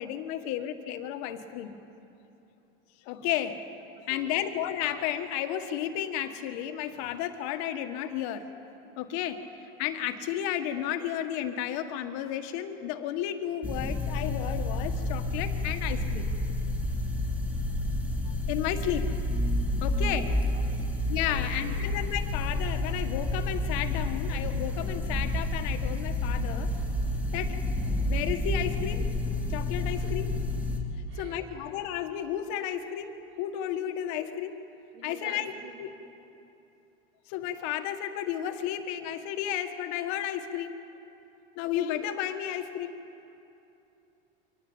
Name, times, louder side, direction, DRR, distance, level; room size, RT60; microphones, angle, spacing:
voice 1, 0.0-1.8 3.1-3.6 4.0-8.5 9.0-16.3 18.3-19.1 19.8-20.3 21.1-26.7 27.3-27.6 28.1-29.0 29.5-30.3 31.2-34.5 35.0-35.5 35.8-35.9 37.3-40.8 41.6-43.0, left 11 dB, 65° left, 7 dB, 1.8 m, -33 dB
sound 1, 13.6-30.8, left 2 dB, 5° right, 3.4 m, -30 dB
voice 2, 20.0-21.9 29.9-30.1 31.1-31.4 34.9-35.8, right 7 dB, 80° right, 2 dB, 3.5 m, -47 dB
24.5 x 19.0 x 8.7 m, 2.9 s
supercardioid pair, 120°, 30 cm